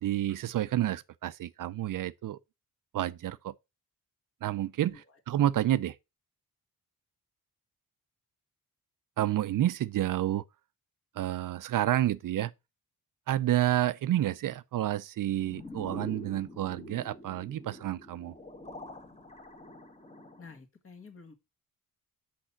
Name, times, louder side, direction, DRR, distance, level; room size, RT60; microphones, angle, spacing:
voice 1, 0.0-2.4 2.9-3.5 4.4-5.0 5.3-6.0 9.2-10.4 11.2-12.5 13.3-18.3, right 13 dB, 65° right, 0.5 m, -29 dB
voice 2, 4.8-5.2 20.4-21.3, left 4 dB, 40° left, 1.8 m, -50 dB
sound 1, 15.4-20.6, left 1 dB, 20° left, 1.3 m, -46 dB
6.3 x 6.1 x 5.6 m
cardioid pair, 115°, 36 cm